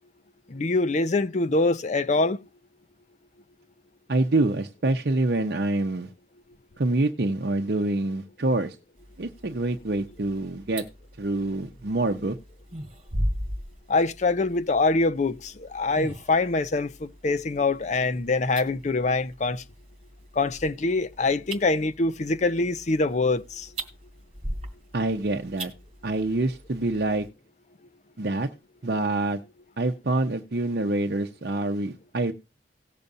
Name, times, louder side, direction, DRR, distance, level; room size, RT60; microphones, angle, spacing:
voice 1, 0.5-2.4 13.9-19.6 20.4-23.7, left 3 dB, 40° left, 0.6 m, -24 dB
voice 2, 4.1-6.1 6.8-8.8 9.2-10.8 11.2-12.4 24.9-25.7 26.0-27.3 28.2-28.5 28.8-29.4 29.8-32.3, right 2 dB, 65° right, 0.7 m, -26 dB
sound 1, 9.0-27.3, right 1 dB, 35° right, 2.2 m, -39 dB
18.5 x 6.8 x 2.6 m
head